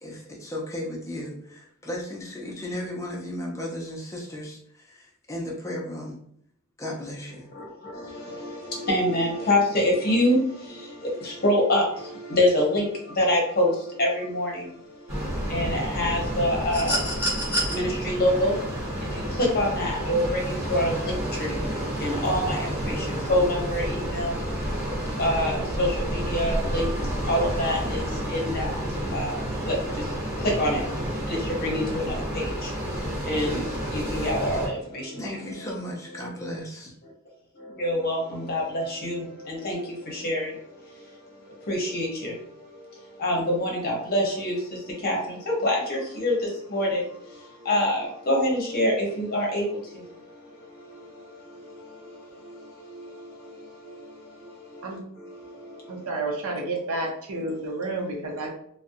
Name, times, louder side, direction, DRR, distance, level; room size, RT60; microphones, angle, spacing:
voice 1, 0.0-6.2 6.8-7.5 35.2-36.9, left 1 dB, 15° left, -2 dB, 0.5 m, -35 dB
voice 2, 7.5-35.3 37.5-56.1, left 1 dB, 45° left, -1 dB, 0.8 m, -27 dB
sound 1, 15.1-34.7, equal, 30° right, 1.3 m, -30 dB
sound 2, 16.7-17.7 19.3-19.4, equal, 10° right, 1.1 m, -28 dB
voice 3, 55.9-58.5, right 2 dB, 70° right, 1 dB, 0.6 m, -30 dB
2.5 x 2.1 x 2.6 m, 0.67 s
head